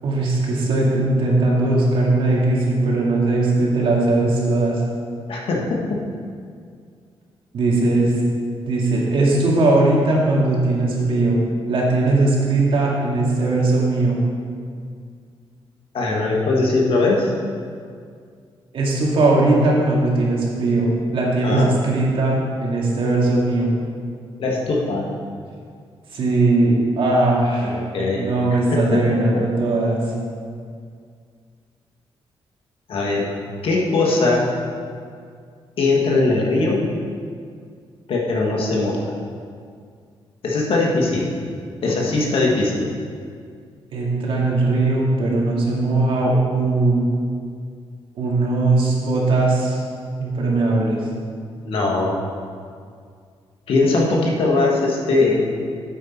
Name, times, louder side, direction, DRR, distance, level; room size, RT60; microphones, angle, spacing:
voice 1, 0.0-4.8 7.5-8.1 8.7-11.4 11.7-14.2 18.7-23.8 26.1-27.8 28.2-30.0 43.9-47.0 48.2-49.8 50.2-51.0, right 2 dB, 65° right, -4 dB, 2.2 m, -19 dB
voice 2, 5.3-6.0 15.9-17.3 21.4-21.8 24.4-25.1 27.6-28.3 28.7-29.4 32.9-33.3 33.6-34.5 35.8-36.9 38.1-39.0 40.4-41.3 41.8-42.8 51.6-52.3 53.7-55.5, left 3 dB, 70° left, -2 dB, 1.8 m, -20 dB
9.2 x 8.2 x 4.5 m, 2.2 s
wide cardioid pair, 140°, 10 cm